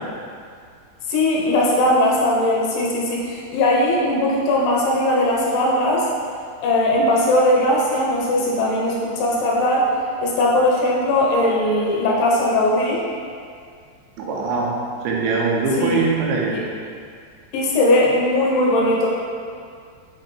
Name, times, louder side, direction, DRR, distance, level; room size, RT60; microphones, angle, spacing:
voice 1, 1.1-6.1 6.6-9.9 10.2-13.0 15.7-16.0 16.5-16.6 17.5-19.1, left 1 dB, 80° left, -4 dB, 3.2 m, -19 dB
voice 2, 14.2-14.7 15.0-16.6, right 4 dB, 85° right, -3 dB, 3.1 m, -21 dB
8.7 x 4.4 x 3.3 m, 2.2 s
omnidirectional pair, 5.3 m